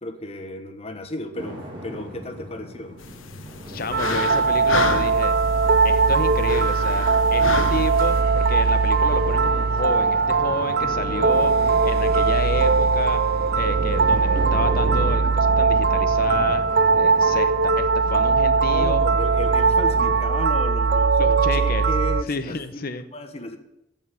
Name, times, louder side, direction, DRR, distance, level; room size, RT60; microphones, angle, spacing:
voice 1, 0.0-3.0 11.5-11.8 18.6-22.6 23.1-23.6, left 1 dB, 30° left, 7 dB, 1.2 m, -34 dB
sound 1, 1.4-20.2, equal, 25° right, 2.7 m, -37 dB
sound 2, 3.0-8.2, left 4 dB, 85° left, 1.0 m, -31 dB
voice 2, 3.7-5.4 5.8-13.2 13.5-19.0 21.2-21.9 22.3-23.0, left 3 dB, 50° left, 10 dB, 0.9 m, -30 dB
sound 3, 3.9-22.2, right 4 dB, 50° right, 0.5 m, -20 dB
15.5 x 5.4 x 8.3 m, 0.85 s
head